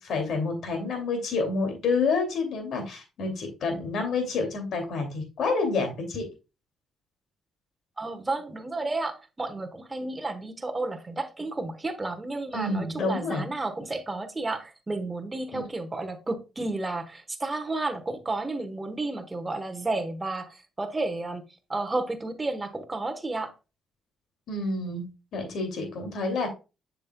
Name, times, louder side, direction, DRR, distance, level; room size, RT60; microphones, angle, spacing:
voice 1, 0.0-6.2 12.5-13.5 15.5-15.6 24.5-26.5, left 3 dB, 70° left, 2.4 m, -28 dB
voice 2, 8.0-21.4 21.7-23.5, right 2 dB, 20° right, 1.1 m, -32 dB
7.3 x 6.0 x 2.2 m
cardioid pair, 90°, 0 cm